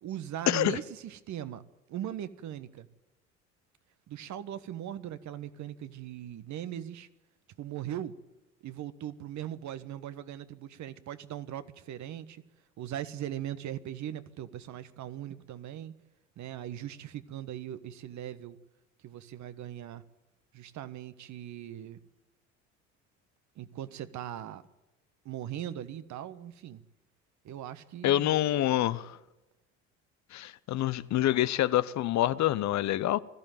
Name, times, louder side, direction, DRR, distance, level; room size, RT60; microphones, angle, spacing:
voice 1, 0.0-1.6 1.9-2.9 4.1-7.1 7.6-8.1 8.6-12.4 12.8-15.9 16.4-18.6 19.0-20.0 20.5-22.0 23.5-24.6 25.2-26.8 27.4-28.3, right 11 dB, 50° right, 1.3 m, -39 dB
voice 2, 28.0-29.2 30.3-33.2, left 13 dB, 50° left, 0.9 m, -26 dB
21.0 x 14.5 x 9.2 m
hypercardioid pair, 55°, 36 cm